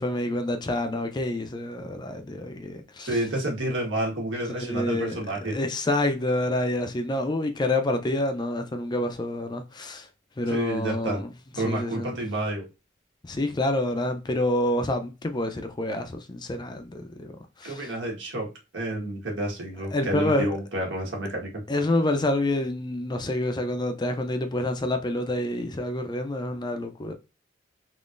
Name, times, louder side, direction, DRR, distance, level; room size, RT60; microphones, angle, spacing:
voice 1, 0.0-3.1 4.6-5.2 5.5-10.1 10.4-11.3 11.6-12.1 13.2-17.3 17.6-17.9 19.9-20.5 21.7-27.1, left 1 dB, 25° left, 0.4 m, -27 dB
voice 2, 3.0-5.6 10.5-11.2 11.5-12.6 17.6-21.6, right 1 dB, 80° right, 1.5 m, -29 dB
3.7 x 3.0 x 2.5 m
head